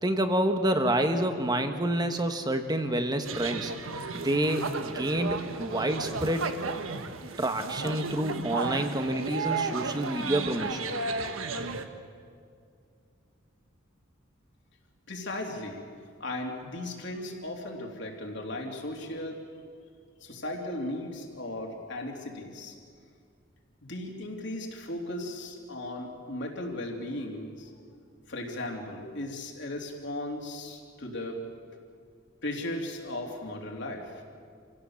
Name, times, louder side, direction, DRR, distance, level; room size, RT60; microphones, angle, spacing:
voice 1, 0.0-3.7 4.1-6.5 7.4-10.8, right 1 dB, 20° right, 7 dB, 1.3 m, -28 dB
sound 1, 3.2-11.8, right 4 dB, 80° right, 1.3 m, -34 dB
voice 2, 15.1-15.9 16.2-19.4 20.2-22.8 23.8-27.7 28.3-31.4 32.4-34.2, left 1 dB, 60° left, 1 dB, 3.1 m, -36 dB
27.0 x 16.5 x 7.2 m, 2.3 s
head